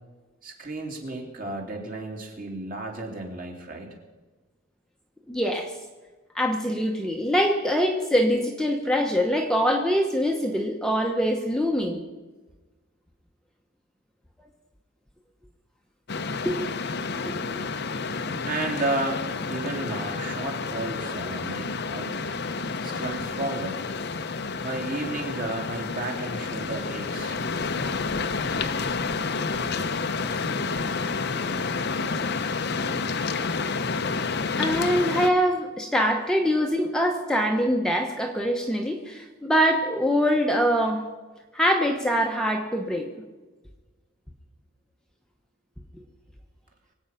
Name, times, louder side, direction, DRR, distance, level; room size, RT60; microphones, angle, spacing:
voice 1, 0.4-3.9 18.4-19.2 19.5-22.4 22.8-23.8 24.6-27.4, right 2 dB, 40° right, 1 dB, 2.8 m, -32 dB
voice 2, 5.3-5.7 6.3-12.0 16.4-16.7 17.1-17.6 34.6-41.0 41.5-43.1, equal, 5° left, 1 dB, 1.0 m, -24 dB
sound 1, 16.1-35.3, left 4 dB, 50° left, 0.8 m, -29 dB
23.5 x 8.7 x 5.7 m, 1.3 s
head